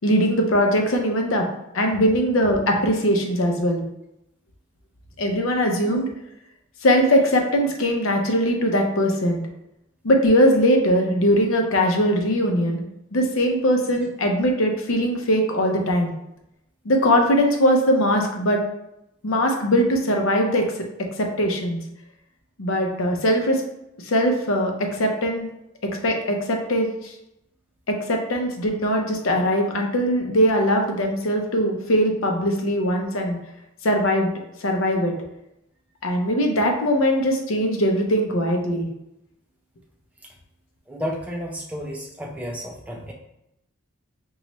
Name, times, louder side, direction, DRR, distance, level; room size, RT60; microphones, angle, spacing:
voice 1, 0.0-1.5 1.7-3.8 5.2-6.1 6.8-9.4 10.0-12.8 13.1-16.1 16.8-18.6 19.2-20.7 21.2-21.8 22.6-23.6 24.0-25.5 25.8-27.1 27.9-33.4 33.8-34.3 34.6-35.1 36.0-38.9, equal, 75° left, 2 dB, 0.6 m, -21 dB
voice 2, 40.9-43.1, equal, 5° right, -1 dB, 0.4 m, -32 dB
4.0 x 2.3 x 3.0 m, 0.85 s
head